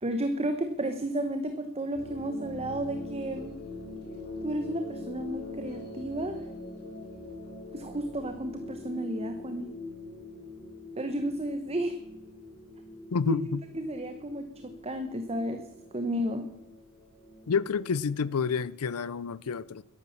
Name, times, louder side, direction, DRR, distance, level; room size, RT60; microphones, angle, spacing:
voice 1, 0.0-3.5 4.4-6.4 7.7-9.7 11.0-12.0 13.3-13.4 13.7-15.6 15.9-16.5, right 1 dB, 30° right, 1.1 m, -32 dB
sound 1, 1.9-18.4, left 2 dB, 50° left, 4.3 m, -43 dB
voice 2, 13.1-13.6 17.5-19.8, left 5 dB, 90° left, 0.5 m, -29 dB
13.0 x 11.5 x 7.2 m
head